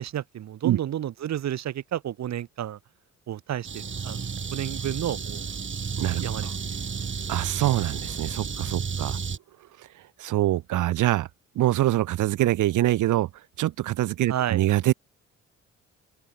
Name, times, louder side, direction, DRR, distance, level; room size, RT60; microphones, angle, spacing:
voice 1, 0.0-2.8 3.3-4.2 4.5-5.5 6.2-6.5 14.3-14.6, right 11 dB, 65° right, 1.6 m, -31 dB
sound 1, 3.6-9.4, right 6 dB, 40° right, 4.8 m, -32 dB
voice 2, 6.0-6.5 7.3-9.2 9.8-9.9 10.2-11.3 11.6-13.3 13.6-14.9, right 14 dB, 80° right, 1.8 m, -24 dB
open air
cardioid pair, 90°, 30 cm